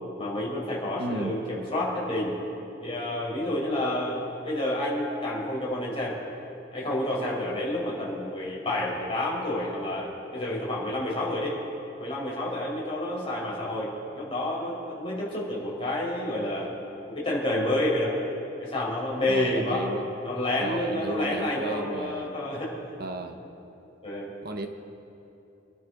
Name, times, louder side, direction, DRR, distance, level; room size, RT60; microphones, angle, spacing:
voice 1, 0.2-2.4 2.8-6.2 6.7-11.6 12.0-16.7 17.1-18.2 18.6-19.9 20.2-22.8 24.0-24.3, left 1 dB, 30° left, -5 dB, 4.3 m, -29 dB
voice 2, 1.0-1.4 19.3-20.1 20.6-22.3 23.0-23.4 24.4-24.7, right 2 dB, 60° right, 5 dB, 0.9 m, -34 dB
26.5 x 12.0 x 3.9 m, 2.9 s
head